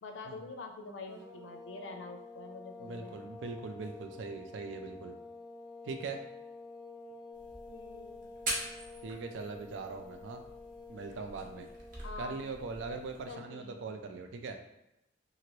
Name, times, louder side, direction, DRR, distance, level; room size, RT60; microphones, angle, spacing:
voice 1, 0.0-3.4 7.7-8.3 12.0-12.4 13.3-14.0, left 3 dB, 75° left, 4 dB, 0.4 m, -46 dB
sound 1, 1.1-12.1, left 3 dB, 10° left, 0.8 m, -49 dB
voice 2, 2.8-5.1 5.8-6.2 9.0-10.4 10.9-11.7 12.2-14.6, right 4 dB, 75° right, 5 dB, 0.4 m, -41 dB
sound 2, 7.3-13.3, right 1 dB, 45° right, 0.7 m, -44 dB
2.8 x 2.5 x 3.0 m, 0.89 s
head